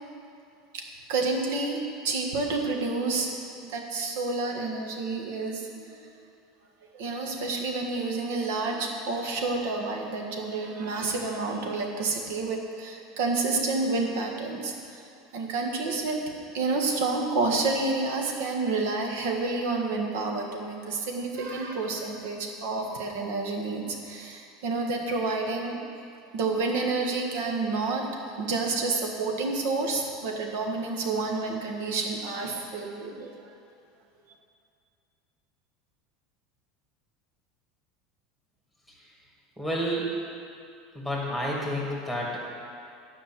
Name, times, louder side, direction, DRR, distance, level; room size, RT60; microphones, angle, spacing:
voice 1, 1.1-3.3 3.6-6.1 6.9-15.0 15.3-16.2 16.5-25.8 26.3-28.0 28.4-33.3, right 3 dB, 75° right, 1 dB, 1.6 m, -29 dB
voice 2, 39.6-40.1 40.9-42.5, equal, 5° right, -3 dB, 2.0 m, -30 dB
10.5 x 5.4 x 7.5 m, 2.5 s
supercardioid pair, 150°, 0 cm